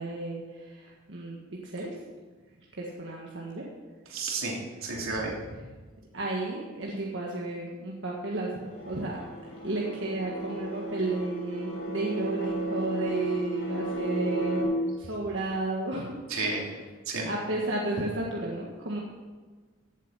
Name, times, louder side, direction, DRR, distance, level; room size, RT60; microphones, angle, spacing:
voice 1, 0.0-1.4 1.6-1.9 2.8-3.6 6.1-9.2 9.4-14.6 15.0-16.1 17.3-19.0, right 2 dB, 60° right, -3 dB, 1.6 m, -32 dB
voice 2, 4.1-5.3 16.3-16.7 17.1-17.3, right 3 dB, 80° right, -2 dB, 3.1 m, -31 dB
sound 1, 8.7-14.6, right 2 dB, 50° left, 3.6 m, -33 dB
16.0 x 8.1 x 5.7 m, 1.4 s
head